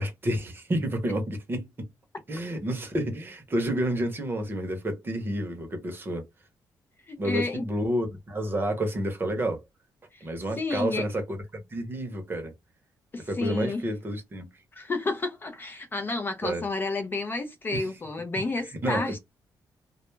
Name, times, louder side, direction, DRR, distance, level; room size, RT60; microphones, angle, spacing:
voice 1, 0.0-1.9 2.3-6.3 7.2-9.6 10.2-11.4 11.7-12.5 13.3-14.5 16.4-16.6 17.7-17.9 18.8-19.2, right 1 dB, 25° right, 0.7 m, -30 dB
voice 2, 7.1-7.6 10.1-10.3 10.6-11.1 13.1-13.8 14.7-19.2, left 3 dB, 25° left, 0.4 m, -30 dB
2.2 x 2.0 x 3.1 m
cardioid pair, 130°, 8 cm